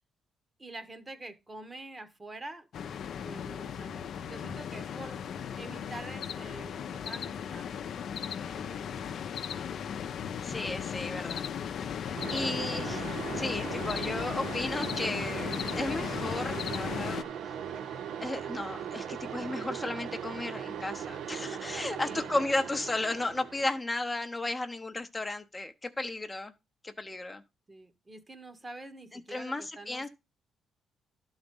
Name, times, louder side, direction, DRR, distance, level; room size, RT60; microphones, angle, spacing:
voice 1, 0.6-2.7 3.2-5.2 5.6-7.7 8.5-9.3 12.0-12.7 22.0-22.3 27.7-30.1, right 2 dB, 25° right, 1.1 m, -46 dB
sound 1, 2.7-17.2, left 8 dB, 65° left, 0.6 m, -36 dB
voice 2, 10.4-11.5 11.7-13.0 13.3-15.5 15.8-17.2 18.2-26.5 26.8-27.4 29.1-30.1, left 2 dB, 20° left, 0.7 m, -34 dB
sound 2, 12.2-23.8, right 8 dB, 75° right, 0.7 m, -39 dB
11.5 x 4.0 x 5.3 m
cardioid pair, 90°, 0 cm